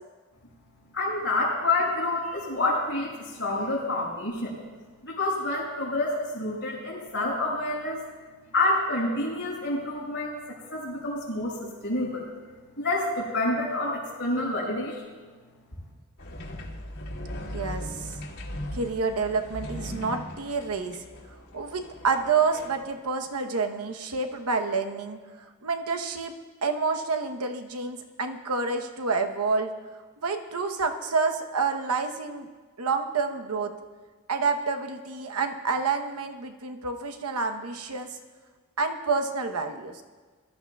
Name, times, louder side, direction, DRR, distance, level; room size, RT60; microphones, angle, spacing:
voice 1, 0.9-4.6 5.0-8.0 8.5-12.3 12.8-15.0, left 2 dB, 55° left, -10 dB, 5.0 m, -28 dB
sound 1, 16.2-23.0, equal, 75° left, 2.6 m, -39 dB
voice 2, 17.4-18.1 18.7-21.0 21.5-26.3 26.6-29.7 30.2-32.5 32.8-33.7 34.3-38.2 38.8-40.0, right 4 dB, 90° right, 6 dB, 0.9 m, -28 dB
22.0 x 13.5 x 2.3 m, 1.4 s
head